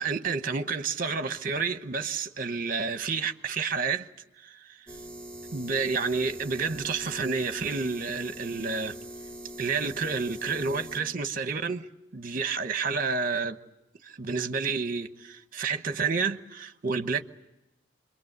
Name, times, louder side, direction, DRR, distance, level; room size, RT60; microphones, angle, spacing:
voice 1, 0.0-4.1 4.4-4.5 5.5-9.0 9.6-11.9 12.1-13.6 14.0-17.2, right 5 dB, 45° right, 1.1 m, -29 dB
sound 1, 4.9-11.0, right 1 dB, 5° left, 2.2 m, -42 dB
27.0 x 22.5 x 8.1 m
head